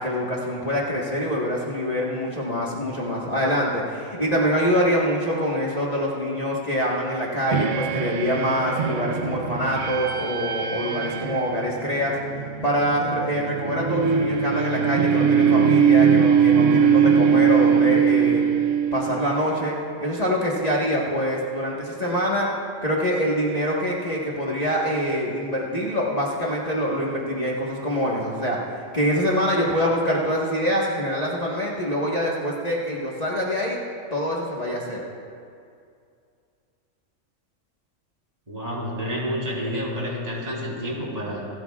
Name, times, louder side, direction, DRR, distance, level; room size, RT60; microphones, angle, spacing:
voice 1, 0.0-12.1 12.6-18.4 18.9-22.5 22.8-33.8 34.1-35.0, equal, 30° left, -5 dB, 1.5 m, -25 dB
sound 1, 7.5-19.6, right 7 dB, 75° right, 1.1 m, -21 dB
voice 2, 38.5-41.4, equal, 30° right, -4 dB, 3.3 m, -29 dB
27.0 x 13.0 x 2.4 m, 2.3 s
omnidirectional pair, 1.3 m